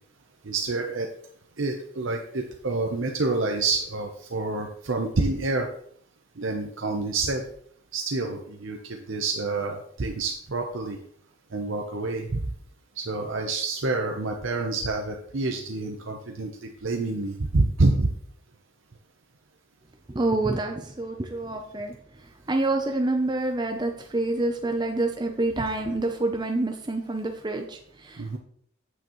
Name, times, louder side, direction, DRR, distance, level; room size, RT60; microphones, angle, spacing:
voice 1, 0.4-1.1 1.6-5.7 6.4-7.5 7.9-11.0 11.5-12.4 13.0-18.1 28.2-28.4, right 3 dB, 65° right, 2 dB, 0.8 m, -27 dB
voice 2, 20.1-21.9 22.5-28.4, right 2 dB, 20° right, 4 dB, 0.5 m, -27 dB
8.8 x 7.8 x 3.1 m, 0.64 s
head